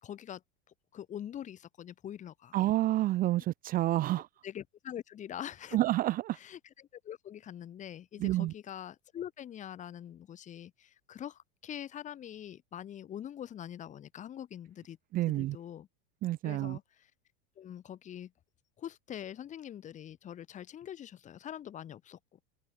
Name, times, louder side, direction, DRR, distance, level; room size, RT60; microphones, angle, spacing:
voice 1, 0.0-0.4 0.9-2.6 4.4-5.8 6.3-15.0 15.3-15.9 16.4-17.1 17.6-18.3 18.8-22.4, left 10 dB, 20° left, 3.6 m, -44 dB
voice 2, 2.5-4.3 5.7-6.4 8.2-8.5 15.1-15.6 16.2-16.8, right 15 dB, 25° right, 0.9 m, -29 dB
open air
supercardioid pair, 170°, 33 cm